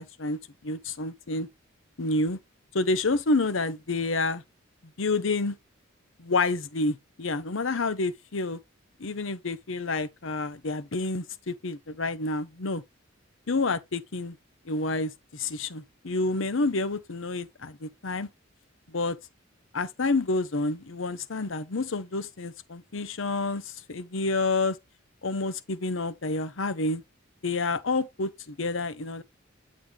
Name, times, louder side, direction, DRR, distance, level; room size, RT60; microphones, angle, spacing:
voice 1, 0.0-1.5 2.0-2.4 2.7-4.4 5.0-5.6 6.2-8.6 9.0-12.8 13.5-14.4 14.6-18.3 18.9-19.2 19.7-24.8 25.2-27.0 27.4-29.2, left 3 dB, 70° left, 0.8 m, -29 dB
8.9 x 4.1 x 3.4 m
head